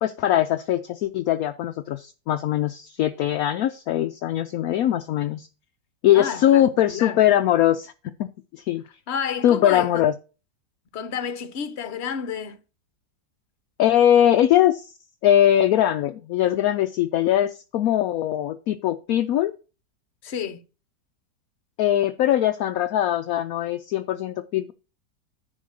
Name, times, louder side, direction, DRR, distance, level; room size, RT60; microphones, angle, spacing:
voice 1, 0.0-5.5 6.0-7.9 8.2-8.3 8.5-8.8 9.4-10.1 13.8-14.9 15.2-19.5 21.8-24.7, left 11 dB, 70° left, 0.9 m, -21 dB
voice 2, 6.1-7.2 9.1-10.0 10.9-12.6 20.2-20.6, left 7 dB, 45° left, 1.0 m, -30 dB
10.5 x 3.8 x 6.4 m
omnidirectional pair, 1.8 m